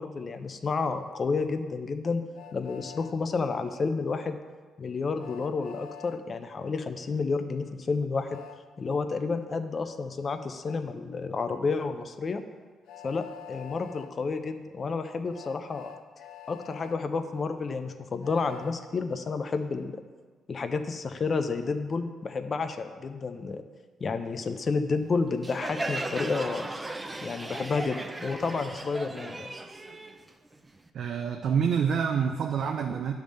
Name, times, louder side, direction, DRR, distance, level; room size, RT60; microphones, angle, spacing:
voice 1, 0.0-2.2 2.5-4.4 4.8-8.4 8.8-12.4 13.0-15.9 16.5-19.9 20.5-23.6 24.0-26.7 27.2-29.5, left 4 dB, 40° left, 8 dB, 0.6 m, -30 dB
Train, 2.3-3.1 5.2-6.2 8.3-8.6 10.7-10.8 12.9-14.1 15.3-17.0 18.2-18.8, left 10 dB, 90° left, 0.4 m, -46 dB
Crowd, 25.4-30.9, right 2 dB, 20° right, 0.5 m, -36 dB
voice 2, 30.9-33.1, right 7 dB, 65° right, 4 dB, 0.5 m, -27 dB
10.0 x 3.6 x 6.4 m, 1.4 s
cardioid pair, 90°, 0 cm